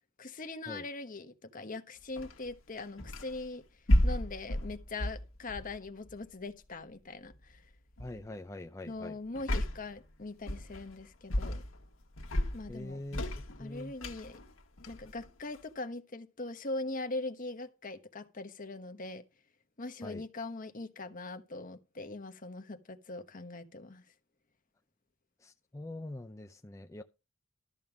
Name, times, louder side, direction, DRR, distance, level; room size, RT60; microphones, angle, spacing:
voice 1, 0.2-3.6 4.0-7.6 8.8-11.6 12.5-13.0 13.6-14.4 14.9-19.2 19.8-24.0, left 2 dB, 40° left, 1.2 m, -41 dB
sound 1, 2.2-3.5 3.9-6.3 7.3-7.6 8.0-8.3 9.4-10.0 10.5-11.0 11.3-11.9 12.2-15.8, left 1 dB, 80° left, 1.4 m, -33 dB
voice 2, 8.0-9.2 12.7-13.2 13.6-13.9 20.0-20.2 25.4-27.0, left 1 dB, 15° left, 0.5 m, -43 dB
13.0 x 5.3 x 6.1 m
head